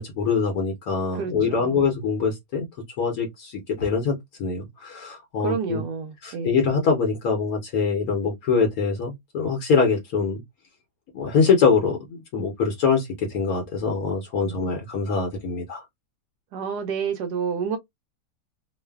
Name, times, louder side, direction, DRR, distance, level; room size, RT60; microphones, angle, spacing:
voice 1, 0.0-2.6 3.0-5.8 6.2-10.4 11.1-15.8, left 5 dB, 70° left, 1.1 m, -24 dB
voice 2, 1.1-1.8 5.4-6.6 14.4-14.6 16.5-17.8, right 6 dB, 85° right, 1.1 m, -29 dB
3.1 x 2.1 x 2.2 m
omnidirectional pair, 1.7 m